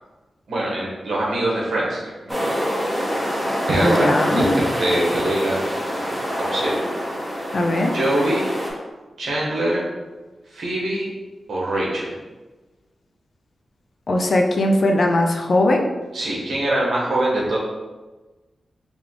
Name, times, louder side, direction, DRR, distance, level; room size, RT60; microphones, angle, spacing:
voice 1, 0.5-2.4 3.7-4.5 4.8-5.7 6.0-6.8 7.3-7.5 7.9-8.5 9.2-9.8 10.5-11.1 11.5-12.1 16.1-17.6, right 1 dB, 85° right, -4 dB, 1.2 m, -23 dB
sound 1, 2.3-8.7, equal, ahead, 0.8 m, -25 dB
voice 2, 3.8-4.5 7.5-7.9 14.1-15.9, left 1 dB, 45° left, 2 dB, 0.4 m, -19 dB
4.0 x 3.3 x 3.3 m, 1.2 s
wide cardioid pair, 170°, 0 cm